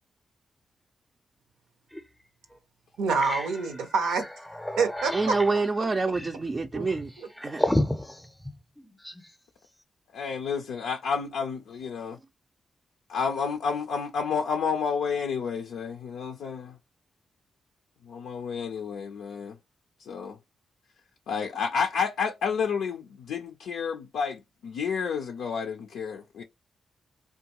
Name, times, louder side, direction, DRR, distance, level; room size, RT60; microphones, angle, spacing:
sound 1, 1.9-2.1 2.5-2.6 2.9-9.3, left 1 dB, 10° left, 0.6 m, -33 dB
voice 1, 3.0-4.3 4.8-5.4 6.7-6.9, right 4 dB, 85° right, 0.6 m, -26 dB
voice 2, 5.1-7.1 7.4-7.7, right 3 dB, 40° right, 0.4 m, -27 dB
voice 3, 10.1-12.2 13.1-16.8 18.0-19.5 20.0-20.4 21.3-26.4, left 6 dB, 80° left, 0.4 m, -30 dB
3.5 x 2.3 x 2.8 m
supercardioid pair, 45°, 0 cm